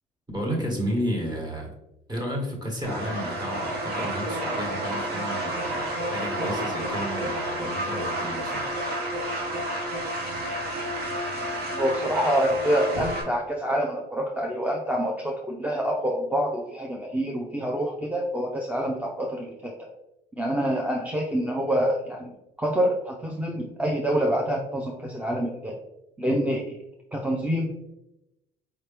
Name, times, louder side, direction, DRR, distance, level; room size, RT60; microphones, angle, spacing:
voice 1, 0.3-1.7 2.1-8.6, equal, 25° right, 0 dB, 1.5 m, -32 dB
sound 1, 2.8-13.2, right 1 dB, 65° right, 1.2 m, -30 dB
voice 2, 11.8-19.9 20.4-22.3 22.6-25.8 26.2-26.8 27.1-27.9, equal, 10° right, 0 dB, 0.5 m, -26 dB
4.8 x 3.0 x 3.4 m, 0.89 s
cardioid pair, 110°, 17 cm